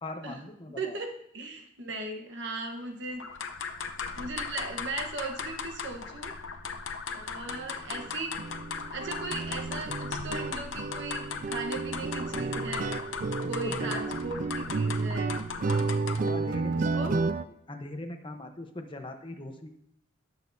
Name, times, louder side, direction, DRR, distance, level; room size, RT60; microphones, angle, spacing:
voice 1, 0.0-1.0 13.6-14.0 15.7-16.8 17.1-17.3 17.7-19.7, left 1 dB, 25° left, 4 dB, 0.9 m, -41 dB
voice 2, 0.8-3.2 4.2-6.3 7.1-8.3 8.9-13.0 13.4-15.4 16.7-17.3, right 3 dB, 60° right, 3 dB, 1.2 m, -37 dB
sound 1, 3.2-16.4, left 5 dB, 70° left, 0.7 m, -38 dB
sound 2, 7.5-7.6 7.9-8.1 8.4-17.4, right 3 dB, 40° right, 0.4 m, -31 dB
18.5 x 6.3 x 2.7 m, 0.73 s
head